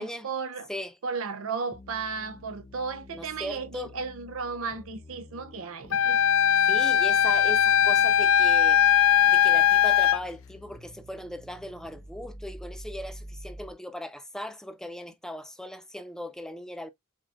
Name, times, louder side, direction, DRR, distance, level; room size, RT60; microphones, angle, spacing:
voice 1, 0.0-0.7 1.0-6.2, right 5 dB, 70° right, 0.6 m, -34 dB
sound 1, 1.7-13.7, equal, 25° left, 0.9 m, -48 dB
voice 2, 3.1-3.9 6.6-8.8 9.2-16.9, left 1 dB, 5° left, 0.5 m, -38 dB
Wind instrument woodwind instrument, 5.9-10.2, left 9 dB, 65° left, 0.4 m, -20 dB
7.4 x 2.5 x 2.4 m
head